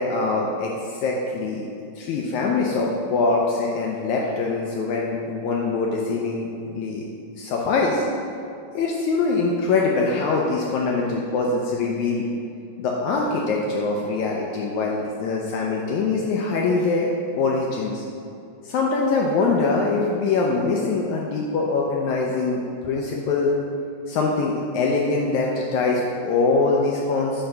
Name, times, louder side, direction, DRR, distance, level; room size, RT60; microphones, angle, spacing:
voice 1, 0.0-1.7 2.0-7.0 7.3-8.1 8.7-12.3 12.8-18.0 18.6-23.6 24.1-27.4, left 3 dB, 75° left, -2 dB, 1.8 m, -23 dB
7.9 x 3.8 x 5.6 m, 2.5 s
omnidirectional pair, 3.8 m